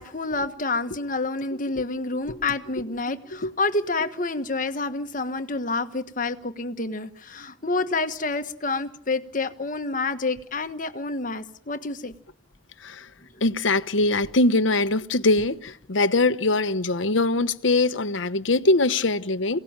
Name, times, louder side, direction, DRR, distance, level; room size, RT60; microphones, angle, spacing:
voice 1, 0.0-12.1, left 3 dB, 40° left, 1.5 m, -28 dB
voice 2, 13.4-19.6, left 2 dB, 75° left, 1.1 m, -22 dB
28.5 x 17.5 x 8.9 m
head